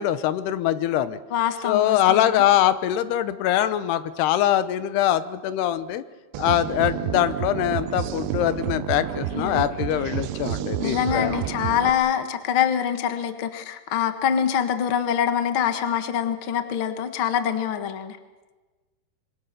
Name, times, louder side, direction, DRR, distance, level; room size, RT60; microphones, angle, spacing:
voice 1, 0.0-1.2 1.6-6.0 6.4-11.4, left 11 dB, 80° left, 14 dB, 3.0 m, -23 dB
voice 2, 1.3-2.4 9.3-9.6 10.8-18.2, left 9 dB, 60° left, 9 dB, 1.3 m, -25 dB
sound 1, 6.3-11.9, right 12 dB, 90° right, 3.1 m, -29 dB
26.0 x 23.0 x 6.7 m, 1.2 s
omnidirectional pair, 4.7 m